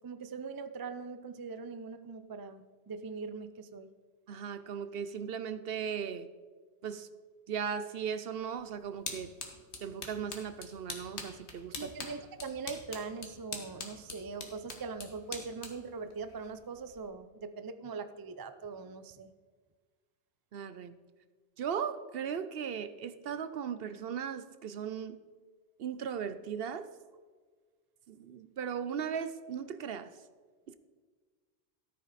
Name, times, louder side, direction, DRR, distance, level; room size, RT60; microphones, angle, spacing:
voice 1, 0.0-3.9 11.7-19.3, right 4 dB, 35° right, 0.4 m, -41 dB
voice 2, 4.3-6.3 6.8-7.1 7.5-9.3 9.8-11.9 20.5-21.0 21.6-25.2 25.8-26.9 28.1-30.1 30.7-30.8, right 7 dB, 65° right, 0.8 m, -37 dB
sound 1, 8.4-17.1, left 3 dB, 75° left, 1.8 m, -45 dB
13.5 x 8.8 x 4.1 m
omnidirectional pair, 1.2 m